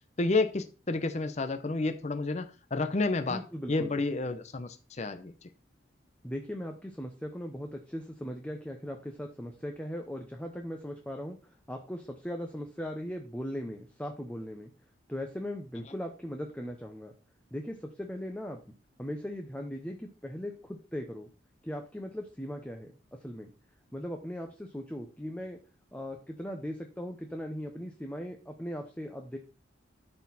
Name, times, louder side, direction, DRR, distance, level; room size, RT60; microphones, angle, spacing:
voice 1, 0.2-3.4 3.7-5.3, left 3 dB, 35° left, 8 dB, 0.7 m, -30 dB
voice 2, 3.3-4.0 6.2-14.7 15.1-17.1 17.5-18.6 19.0-21.3 21.6-22.9 23.2-23.5 23.9-25.6 25.9-29.4, equal, 5° left, 3 dB, 0.8 m, -39 dB
12.5 x 4.3 x 4.0 m, 0.35 s
head